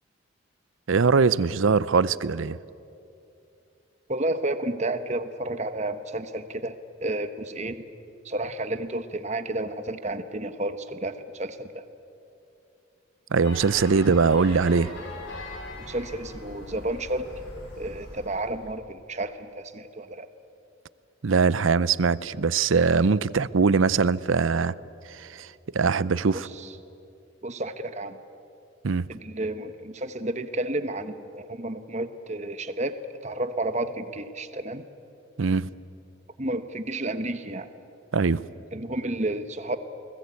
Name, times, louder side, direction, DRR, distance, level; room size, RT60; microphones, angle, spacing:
voice 1, 0.9-2.6 13.3-14.9 21.2-24.7 25.1-26.5 28.8-29.1 35.4-35.7 38.1-38.4, right 4 dB, 75° right, 18 dB, 0.6 m, -22 dB
voice 2, 4.1-7.8 8.2-11.8 15.8-17.3 17.8-20.3 26.5-26.7 27.4-28.2 29.1-34.8 36.4-37.7 38.7-39.8, right 1 dB, 35° right, 10 dB, 1.1 m, -31 dB
sound 1, 13.4-18.7, left 1 dB, 65° left, 6.8 m, -41 dB
29.0 x 20.5 x 8.4 m, 2.7 s
head